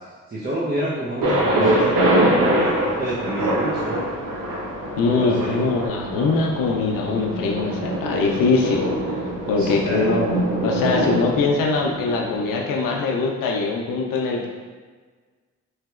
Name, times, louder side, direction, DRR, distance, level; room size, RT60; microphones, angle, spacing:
voice 1, 0.3-1.9 2.5-4.1 5.2-5.7 9.6-10.1, right 1 dB, 30° right, -9 dB, 0.8 m, -28 dB
Thunder, 1.2-13.0, right 1 dB, 80° right, 0.7 m, -24 dB
voice 2, 5.0-10.2 10.6-14.5, left 4 dB, 85° left, 0 dB, 0.5 m, -22 dB
3.2 x 2.8 x 2.4 m, 1.4 s
supercardioid pair, 55°, 32 cm